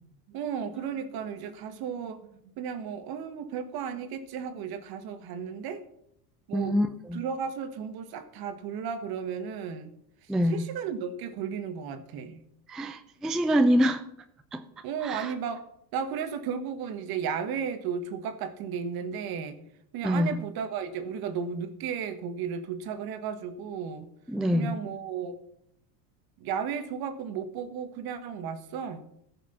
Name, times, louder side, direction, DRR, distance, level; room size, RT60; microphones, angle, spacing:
voice 1, 0.3-5.8 6.5-6.8 7.1-9.9 10.4-12.4 14.8-15.6 15.9-19.6 19.9-24.1 24.5-25.4 26.4-29.0, right 7 dB, 45° right, 9 dB, 1.5 m, -34 dB
voice 2, 6.5-7.2 10.3-10.6 12.7-14.0 14.5-14.6 15.0-15.3 20.0-20.4 24.3-24.8, equal, ahead, 8 dB, 0.3 m, -25 dB
14.0 x 6.1 x 5.7 m, 0.74 s
supercardioid pair, 105°, 49 cm